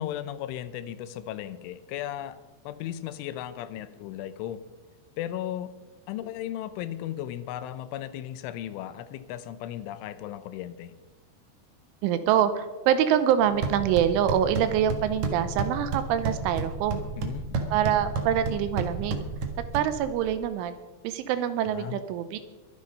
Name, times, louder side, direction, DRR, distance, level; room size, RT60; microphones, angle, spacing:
voice 1, 0.0-2.4 2.6-4.6 5.2-5.7 6.1-10.9 17.2-17.5 21.8-22.0, left 11 dB, 80° left, 12 dB, 3.1 m, -36 dB
voice 2, 12.0-17.0 17.7-19.2 19.7-20.8 21.0-22.4, right 9 dB, 85° right, 11 dB, 3.2 m, -25 dB
sound 1, 13.4-20.4, right 3 dB, 60° right, 1.8 m, -32 dB
22.5 x 10.0 x 5.3 m, 1.2 s
omnidirectional pair, 5.6 m